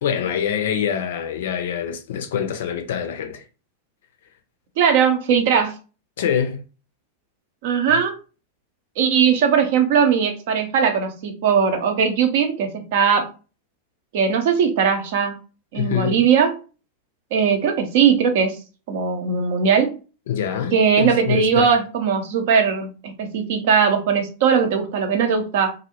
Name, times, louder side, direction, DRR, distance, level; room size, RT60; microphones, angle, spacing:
voice 1, 0.0-3.4 6.2-6.6 15.8-16.2 20.3-21.7, left 8 dB, 55° left, 0.4 m, -25 dB
voice 2, 4.8-5.7 7.6-8.1 9.0-13.3 14.1-15.4 15.7-16.5 17.3-18.6 18.9-20.0 20.7-25.7, right 6 dB, 50° right, 0.5 m, -19 dB
2.5 x 2.0 x 2.8 m
figure-of-eight pair, 90°, 0 cm